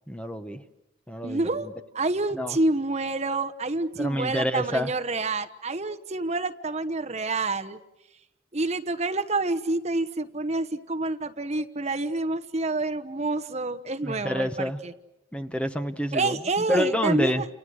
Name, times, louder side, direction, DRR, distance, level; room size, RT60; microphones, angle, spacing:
voice 1, 0.1-0.6 1.1-1.5 2.3-2.6 3.9-4.9 14.0-14.8 15.3-16.4 16.7-17.5, equal, 5° left, 8 dB, 1.1 m, -28 dB
voice 2, 1.2-1.7 1.9-7.8 8.5-14.9 16.1-17.4, right 2 dB, 35° right, 7 dB, 1.1 m, -28 dB
29.5 x 29.5 x 6.4 m, 0.90 s
head